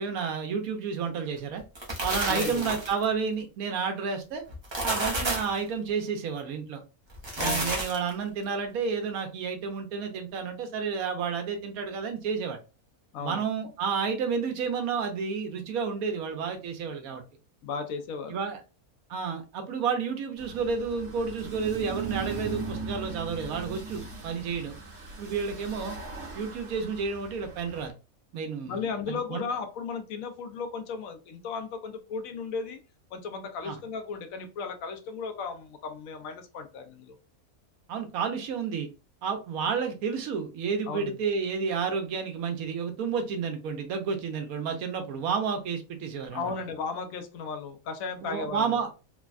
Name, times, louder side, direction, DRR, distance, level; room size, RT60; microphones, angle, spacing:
voice 1, 0.0-1.6 2.0-4.4 4.8-6.8 7.4-12.6 13.2-17.2 18.3-18.6 19.1-24.8 25.2-26.0 26.3-27.9 28.3-29.4 33.6-33.8 37.9-38.9 39.2-46.5 48.2-48.9, right 6 dB, 75° right, 1.1 m, -31 dB
sound 1, 1.6-3.0 4.5-5.6 7.1-8.1, right 1 dB, 25° right, 0.6 m, -31 dB
voice 2, 2.3-2.8 7.4-7.8 13.1-13.4 17.6-18.4 28.7-32.8 33.1-37.1 40.9-41.2 46.3-48.8, left 5 dB, 70° left, 1.0 m, -35 dB
sound 2, 20.4-27.9, right 4 dB, 55° right, 1.1 m, -39 dB
3.3 x 2.1 x 2.3 m
omnidirectional pair, 1.5 m